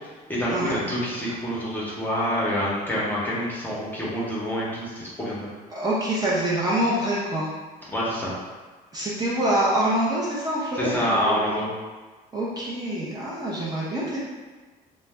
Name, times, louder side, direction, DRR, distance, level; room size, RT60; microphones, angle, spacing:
voice 1, 0.3-5.5 7.9-8.3 10.8-11.7, equal, 10° left, -7 dB, 0.8 m, -27 dB
voice 2, 5.7-7.5 8.9-11.5 12.3-14.2, right 1 dB, 25° right, -7 dB, 0.6 m, -25 dB
2.5 x 2.1 x 3.3 m, 1.3 s
cardioid pair, 110°, 17 cm